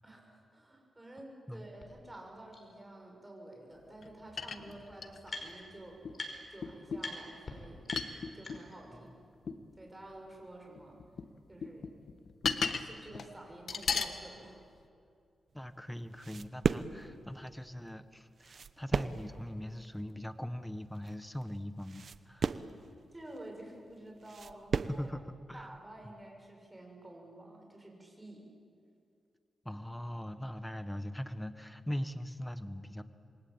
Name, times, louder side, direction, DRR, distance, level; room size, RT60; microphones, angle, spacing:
voice 1, 0.0-6.0 6.5-7.9 8.3-9.1 9.8-11.0 11.5-12.0 12.6-14.6 23.1-25.1 25.5-28.5, right 1 dB, 15° right, 1 dB, 7.3 m, -50 dB
sound 1, 1.8-1.9 2.5-2.6 3.9-4.0 4.2-5.8 6.1-6.6 7.0-7.1 7.4-7.5 7.8-8.9, left 3 dB, 40° left, 5.3 m, -44 dB
sound 2, 4.0-4.1 4.4-5.5 6.0-6.2 6.6-7.1 7.9-8.6 9.5-9.6 10.8-11.3 11.6-12.9 13.1-13.3 13.7-14.2 14.8-14.9, left 5 dB, 65° left, 1.5 m, -35 dB
voice 2, 15.5-22.5 24.9-25.2 25.5-25.7 26.0-26.1 29.6-33.0, equal, 5° left, 10 dB, 1.3 m, -41 dB
sound 3, 15.6-25.1, right 5 dB, 55° right, 0.9 m, -37 dB
27.5 x 23.0 x 8.8 m, 2.4 s
cardioid pair, 90°, 0 cm